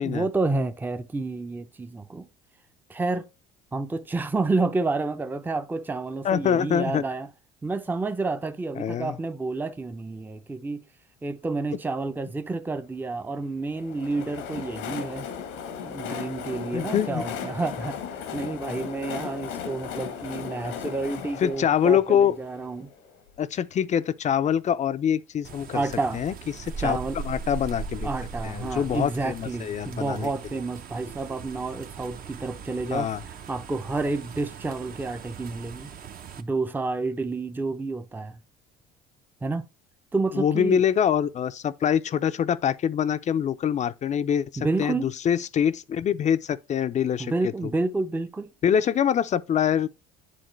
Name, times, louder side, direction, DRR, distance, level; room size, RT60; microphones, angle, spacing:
voice 1, 0.0-2.3 2.9-3.2 3.7-7.3 7.6-10.8 11.2-15.3 15.8-22.9 25.7-26.2 26.8-27.2 28.0-35.9 36.4-38.4 39.4-39.7 40.1-40.8 44.6-45.1 47.2-48.5, right 3 dB, 10° right, 0.5 m, -29 dB
voice 2, 6.2-7.0 8.8-9.2 16.7-17.2 21.4-22.3 23.4-25.8 26.1-26.3 26.6-27.0 27.2-28.1 28.4-30.3 32.9-33.2 40.3-44.5 44.8-47.5 48.6-49.9, left 8 dB, 35° left, 0.5 m, -24 dB
Train, 13.7-23.4, left 7 dB, 85° left, 1.2 m, -36 dB
sound 1, 25.4-36.4, right 5 dB, 45° right, 0.7 m, -39 dB
10.0 x 3.7 x 3.1 m
supercardioid pair, 85°, 20 cm